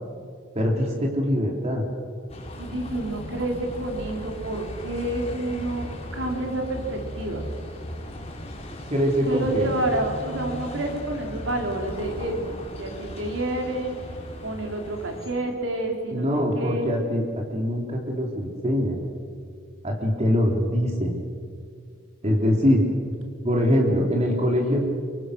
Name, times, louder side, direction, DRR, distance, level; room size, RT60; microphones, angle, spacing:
voice 1, 0.5-1.8 8.9-9.7 16.1-17.2 17.5-19.0 19.8-21.2 22.2-22.8 23.4-24.9, equal, 35° right, 1 dB, 3.1 m, -23 dB
Bus, 2.3-15.3, left 1 dB, 35° left, 3.9 m, -37 dB
voice 2, 2.6-7.5 9.3-14.0 14.4-16.9 22.2-22.7, right 1 dB, 70° right, 2 dB, 3.9 m, -29 dB
25.5 x 23.0 x 6.4 m, 2.1 s
head